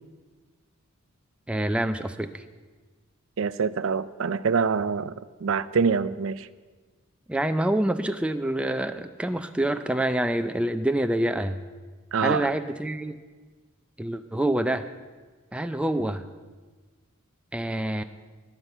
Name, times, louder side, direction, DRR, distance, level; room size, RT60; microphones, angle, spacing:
voice 1, 1.5-2.4 7.3-11.6 12.2-13.2 14.0-14.9 15.5-16.2 17.5-18.0, right 1 dB, 5° right, 8 dB, 0.4 m, -26 dB
voice 2, 3.4-5.1 5.4-6.5 12.1-12.5, right 5 dB, 65° right, 16 dB, 0.5 m, -25 dB
10.5 x 10.0 x 7.8 m, 1.4 s
head